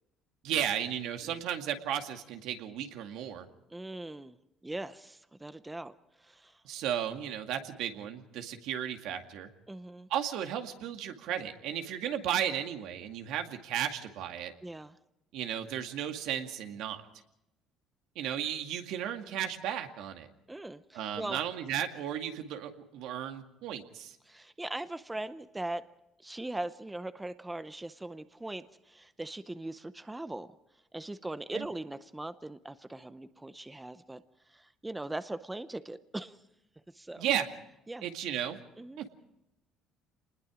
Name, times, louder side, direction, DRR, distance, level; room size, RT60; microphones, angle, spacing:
voice 1, 0.4-3.4 6.6-9.5 10.1-14.5 15.3-17.0 18.2-20.3 20.9-24.1 31.5-31.6 37.2-37.5 38.0-38.6 39.0-39.1, right 10 dB, 75° right, 5 dB, 2.2 m, -34 dB
voice 2, 3.7-4.4 4.6-6.6 9.7-10.1 14.6-15.0 20.5-21.4 24.3-25.9 26.2-30.5 30.9-34.2 34.5-36.4 36.9-37.3 37.9-38.1 38.8-39.0, right 2 dB, 10° right, 12 dB, 0.7 m, -40 dB
27.5 x 20.5 x 5.0 m, 0.87 s
cardioid pair, 135°, 0 cm